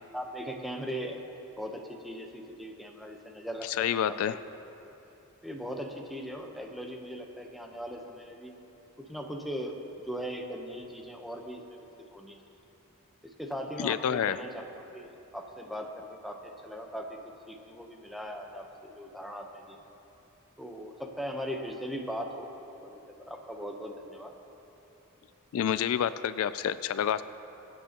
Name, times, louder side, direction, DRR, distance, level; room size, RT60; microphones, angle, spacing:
voice 1, 0.1-1.2 1.6-3.7 4.0-4.4 5.4-8.5 9.1-9.8 10.0-11.8 12.1-12.4 13.4-17.2 17.5-19.8 20.6-22.5 22.8-24.3, equal, ahead, 2 dB, 0.9 m, -39 dB
voice 2, 3.6-4.4 13.8-14.4 25.5-27.2, left 9 dB, 70° left, 14 dB, 0.3 m, -28 dB
23.0 x 9.2 x 2.9 m, 3.0 s
head